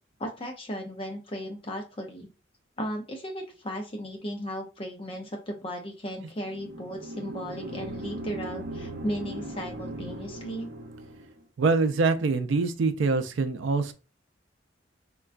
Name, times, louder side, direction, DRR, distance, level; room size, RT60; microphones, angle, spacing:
voice 1, 0.2-2.3 2.8-10.7, equal, 30° left, 0.5 m, -36 dB
sound 1, 6.4-11.4, right 1 dB, 60° right, 0.8 m, -38 dB
voice 2, 11.6-13.9, right 4 dB, 90° right, 0.4 m, -24 dB
3.8 x 2.2 x 2.4 m
head